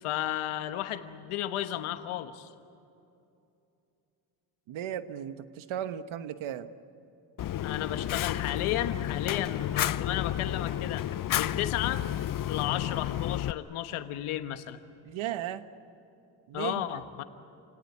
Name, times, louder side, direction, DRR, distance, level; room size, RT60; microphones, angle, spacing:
voice 1, 0.0-2.5 7.6-11.0 11.4-12.1 12.4-14.8 16.5-17.2, left 12 dB, 85° left, 9 dB, 1.4 m, -33 dB
voice 2, 4.7-6.7 15.0-15.7 16.5-16.9, right 11 dB, 75° right, 11 dB, 1.3 m, -35 dB
Fire, 7.4-13.5, left 12 dB, 45° left, 0.6 m, -31 dB
28.5 x 18.0 x 10.0 m, 2.7 s
supercardioid pair, 70°, 48 cm